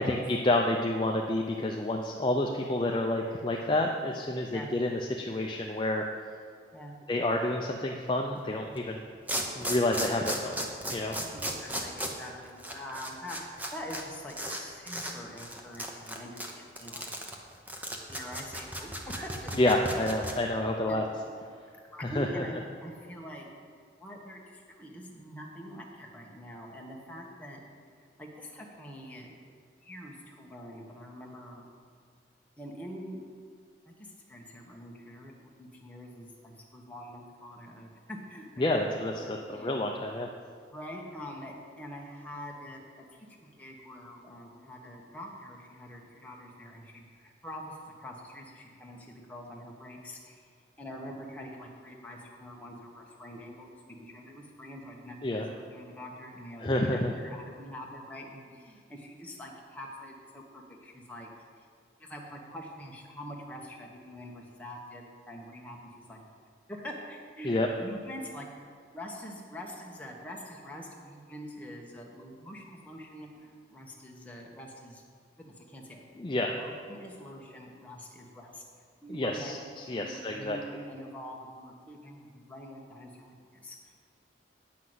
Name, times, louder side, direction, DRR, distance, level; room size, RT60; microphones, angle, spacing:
voice 1, 0.0-6.1 7.1-9.0 9.6-11.1 19.5-21.0 22.0-22.4 38.6-40.3 55.2-55.5 56.6-57.1 67.4-67.7 76.2-76.6 79.1-80.6, left 1 dB, 25° left, 1 dB, 0.5 m, -29 dB
sound 1, 8.7-8.8 9.3-14.0 14.3-14.6 14.9-15.1 15.4-20.3, equal, 10° right, 0.8 m, -35 dB
voice 2, 11.3-17.1 18.1-19.3 20.2-20.4 20.9-21.0 21.8-23.5 24.0-27.6 28.0-29.4 29.8-31.6 32.6-33.2 33.9-38.9 39.1-39.8 40.7-50.5 50.8-61.3 61.6-61.7 62.0-66.4 66.7-68.5 68.9-75.0 75.4-76.0 76.5-78.6 79.0-79.6 79.9-84.0, equal, 10° left, -2 dB, 1.2 m, -45 dB
9.3 x 5.8 x 7.8 m, 2.1 s
head